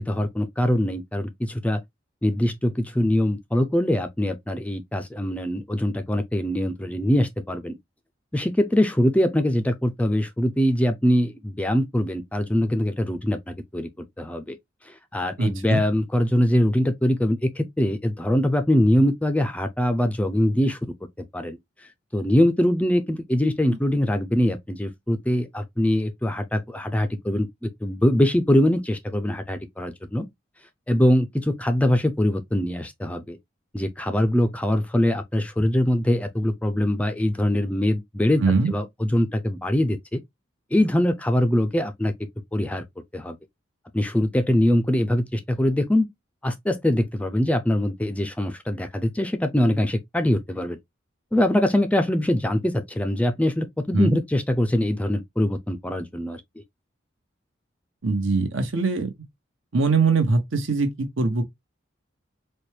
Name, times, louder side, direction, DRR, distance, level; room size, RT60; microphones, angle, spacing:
voice 1, 0.0-1.8 2.2-7.8 8.3-13.9 14.2-14.6 15.1-20.8 21.3-21.6 22.1-30.3 30.9-33.4 33.7-38.4 38.7-40.2 40.7-42.1 42.5-42.8 43.1-43.4 43.9-46.1 46.4-50.8 51.3-56.4, left 1 dB, 5° left, 0.3 m, -23 dB
voice 2, 15.4-15.8 38.4-38.7 53.9-54.2 58.0-59.1 59.7-61.4, right 3 dB, 80° right, 0.9 m, -22 dB
4.3 x 2.2 x 3.2 m
head